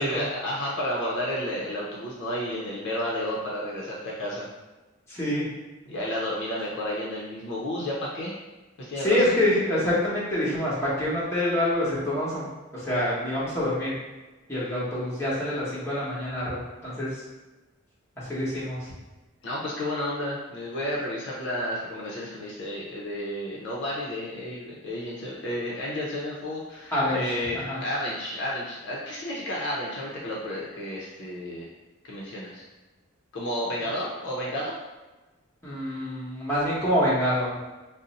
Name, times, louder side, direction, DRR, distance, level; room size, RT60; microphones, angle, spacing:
voice 1, 0.0-4.5 5.9-8.3 8.8-9.4 19.4-31.7 32.0-32.6 33.3-34.8, left 1 dB, 55° left, -4 dB, 0.6 m, -31 dB
voice 2, 5.1-5.5 9.0-12.5 12.7-13.9 14.5-16.6 16.8-17.1 18.3-18.8 26.9-27.8 35.6-37.5, left 1 dB, 15° left, -8 dB, 0.9 m, -26 dB
2.6 x 2.0 x 3.9 m, 1.2 s
head